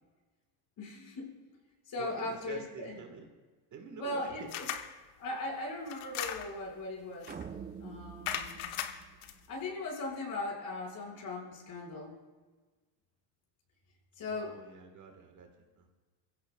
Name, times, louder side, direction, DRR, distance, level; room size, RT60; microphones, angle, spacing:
voice 1, 0.8-1.3 1.9-3.0 4.0-4.7 5.2-7.3 7.8-8.7 9.5-12.1 14.2-14.6, left 2 dB, 45° left, -1 dB, 5.2 m, -38 dB
voice 2, 2.0-3.3 3.7-4.5 4.8-4.9 14.3-15.9, right 6 dB, 35° right, 4 dB, 1.6 m, -47 dB
sound 1, 4.5-4.9 5.9-6.7 7.2-7.5 8.3-9.3, left 10 dB, 65° left, 1.2 m, -38 dB
sound 2, 7.3-9.7, right 7 dB, 20° right, 0.6 m, -46 dB
22.0 x 16.0 x 2.3 m, 1.3 s
supercardioid pair, 115°, 48 cm